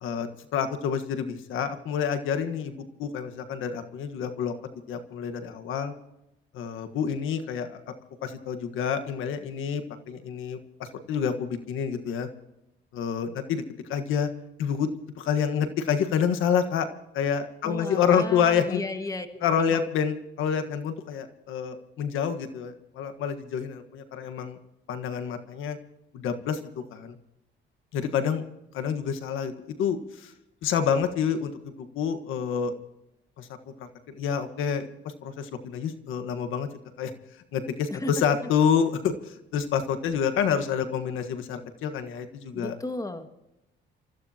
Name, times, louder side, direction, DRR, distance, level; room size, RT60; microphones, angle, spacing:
voice 1, 0.0-4.5 4.9-5.9 6.5-7.9 8.2-12.3 12.9-13.6 13.9-14.3 14.6-14.9 15.2-16.9 17.1-18.8 19.4-24.6 24.9-25.8 26.1-26.6 26.9-27.2 27.9-28.4 28.7-30.3 30.6-32.7 33.4-33.5 33.8-34.9 35.2-36.7 37.0-37.1 37.5-42.8, left 7 dB, 85° left, 8 dB, 1.5 m, -28 dB
voice 2, 17.6-19.8 37.9-38.1 42.5-43.3, left 2 dB, 15° left, 7 dB, 1.9 m, -35 dB
28.5 x 15.0 x 2.9 m, 0.86 s
cardioid pair, 90°, 20 cm